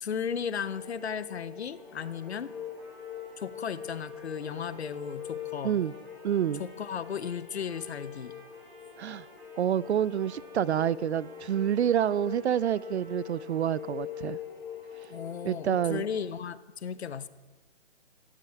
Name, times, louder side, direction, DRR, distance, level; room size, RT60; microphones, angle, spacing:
voice 1, 0.0-2.5 3.4-5.8 6.6-8.4 15.1-17.3, left 7 dB, 65° left, 0.8 m, -35 dB
sound 1, 0.5-16.2, left 9 dB, 10° left, 1.9 m, -43 dB
Trumpet, 2.0-14.4, right 2 dB, 25° right, 2.8 m, -57 dB
voice 2, 6.2-6.6 9.0-9.3 9.6-14.4 15.4-16.0, right 9 dB, 70° right, 0.5 m, -28 dB
16.0 x 12.5 x 4.6 m
hypercardioid pair, 170°, 35 cm